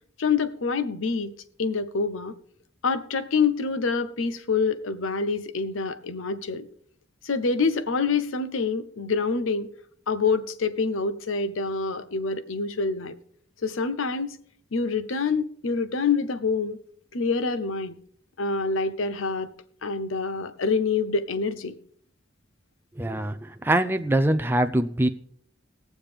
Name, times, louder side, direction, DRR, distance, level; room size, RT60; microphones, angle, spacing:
voice 1, 0.2-1.3 1.6-2.3 2.8-6.7 7.2-9.7 10.1-13.1 13.6-14.4 14.7-16.8 17.1-18.0 18.4-19.5 19.8-21.8, left 4 dB, 80° left, 0.7 m, -26 dB
voice 2, 23.0-25.1, right 1 dB, 10° right, 0.4 m, -23 dB
19.5 x 7.3 x 3.4 m
head